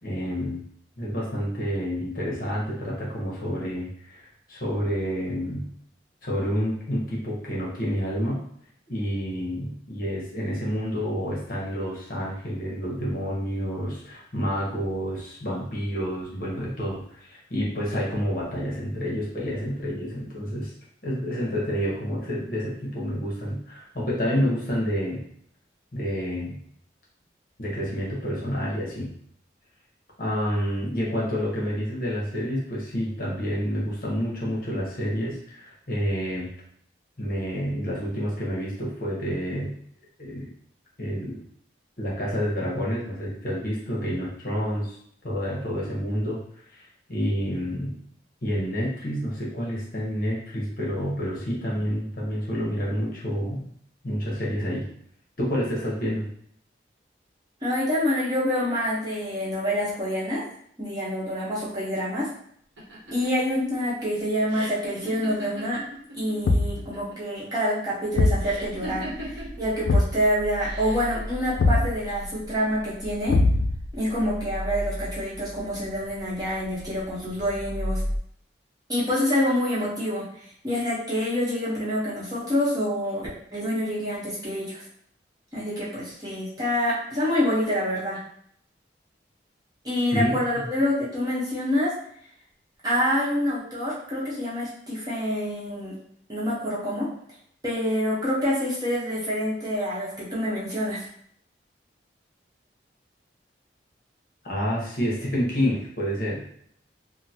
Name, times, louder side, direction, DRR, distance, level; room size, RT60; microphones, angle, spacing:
voice 1, 0.0-0.6 1.0-5.7 6.2-8.4 8.9-20.7 21.0-25.2 25.9-26.6 27.6-29.1 30.2-36.5 37.2-39.7 40.2-40.5 41.0-41.4 42.0-45.0 45.2-46.4 46.7-46.8 47.1-48.0 48.4-53.7 54.0-54.8 55.4-56.3 90.1-90.3 90.6-90.7 104.4-106.4, equal, 50° left, -4 dB, 1.0 m, -29 dB
voice 2, 57.6-60.4 60.8-62.3 63.1-65.8 66.2-73.4 73.9-78.0 78.9-84.8 85.5-88.2 89.8-91.9 92.8-95.9 96.3-97.1 97.6-101.0, equal, 20° right, -8 dB, 0.9 m, -27 dB
sound 1, 62.8-66.4 66.6-67.3 68.4-69.6 70.6-71.2, right 1 dB, 90° right, 1.1 m, -39 dB
Thump thud, 66.4-66.9 68.2-68.5 69.9-70.2 71.6-71.9 73.3-73.9, left 2 dB, 75° left, 0.3 m, -21 dB
sound 2, 68.1-78.2, equal, 20° left, 1.2 m, -36 dB
3.7 x 2.1 x 2.8 m, 0.65 s
head